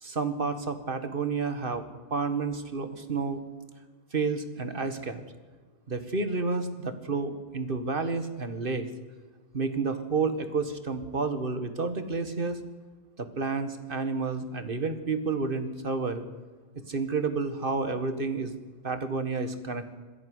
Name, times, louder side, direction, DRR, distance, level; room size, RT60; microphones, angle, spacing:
voice 1, 0.0-1.9 2.1-3.4 4.1-5.2 5.9-8.9 9.5-12.6 13.2-16.3 16.9-18.5 18.8-20.0, right 4 dB, 50° right, 9 dB, 1.9 m, -30 dB
22.0 x 15.0 x 9.6 m, 1.4 s
omnidirectional pair, 1.1 m